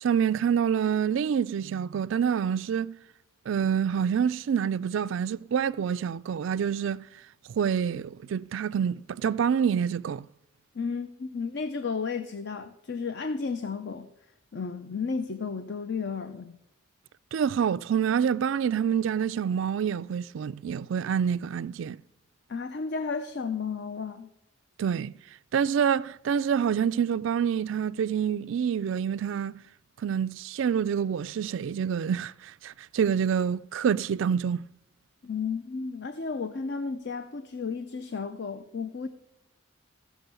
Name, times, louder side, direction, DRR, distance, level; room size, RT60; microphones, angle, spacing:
voice 1, 0.0-3.0 3.5-7.1 7.5-10.3 17.3-22.0 24.8-25.1 25.5-29.6 30.0-34.7, right 7 dB, 60° right, 0.3 m, -27 dB
voice 2, 10.7-14.1 14.5-16.5 22.5-24.3 35.2-39.1, left 5 dB, 55° left, 0.6 m, -33 dB
14.5 x 6.1 x 6.8 m
head